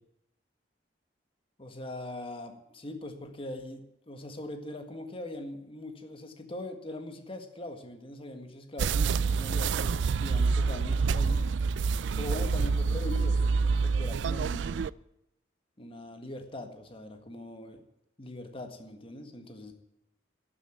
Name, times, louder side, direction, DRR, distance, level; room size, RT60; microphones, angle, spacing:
voice 1, 1.6-11.4 12.1-14.9 15.8-17.8 18.2-19.7, left 1 dB, 30° left, 6 dB, 1.7 m, -41 dB
sound 1, 8.8-14.9, right 4 dB, 75° right, 0.4 m, -27 dB
12.0 x 7.2 x 9.2 m, 0.86 s
head